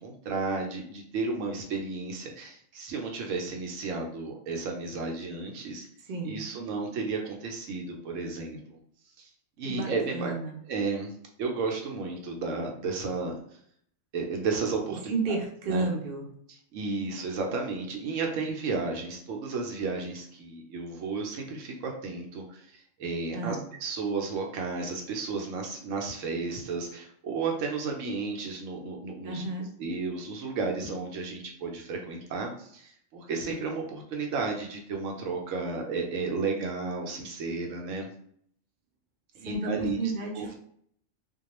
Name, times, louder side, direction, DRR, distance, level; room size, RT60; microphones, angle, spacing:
voice 1, 0.0-5.9 6.2-8.8 9.2-9.3 9.6-10.3 10.6-11.1 11.4-13.3 14.1-15.1 15.7-15.9 16.5-38.1 39.3-40.0 40.3-40.6, right 4 dB, 75° right, 1 dB, 0.9 m, -33 dB
voice 2, 6.1-6.4 9.6-10.6 15.1-16.3 23.3-23.6 29.2-29.7 39.4-39.7 40.0-40.5, right 3 dB, 55° right, 1 dB, 0.6 m, -32 dB
2.2 x 2.2 x 2.9 m, 0.64 s
omnidirectional pair, 1.4 m